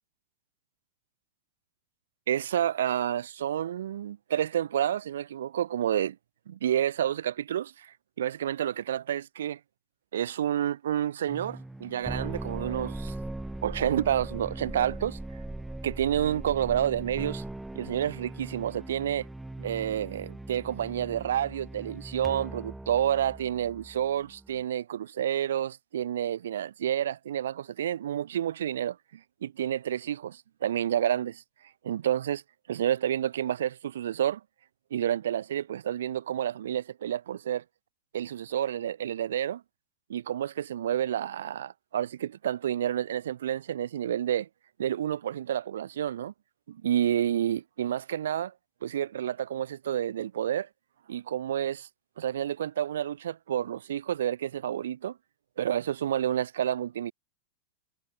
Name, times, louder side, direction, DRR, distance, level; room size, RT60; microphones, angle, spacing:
voice 1, 2.3-6.2 6.5-9.6 10.1-13.1 13.6-15.2 15.8-17.4 17.7-19.3 19.6-31.4 31.8-32.4 32.7-34.4 34.9-37.6 38.1-39.6 40.1-44.5 44.8-46.3 46.7-48.5 48.8-50.7 51.1-51.9 52.2-55.2 55.6-57.1, right 10 dB, 75° right, 2.6 m, -29 dB
sound 1, 11.3-24.6, right 2 dB, 5° right, 3.8 m, -40 dB
hypercardioid pair, 95°, 0 cm